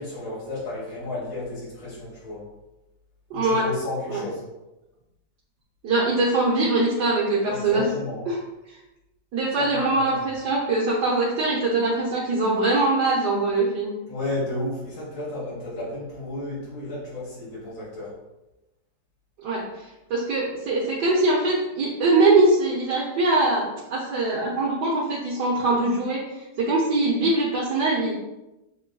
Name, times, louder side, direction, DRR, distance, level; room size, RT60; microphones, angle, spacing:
voice 1, 0.0-2.5 3.3-4.4 7.5-8.2 9.6-10.2 14.1-18.2, left 2 dB, 85° left, -7 dB, 2.1 m, -33 dB
voice 2, 3.3-3.6 4.1-4.2 5.8-7.8 8.3-8.4 9.3-13.9 19.4-28.1, right 2 dB, 70° right, -5 dB, 1.3 m, -22 dB
6.8 x 2.6 x 2.2 m, 0.99 s
omnidirectional pair, 2.0 m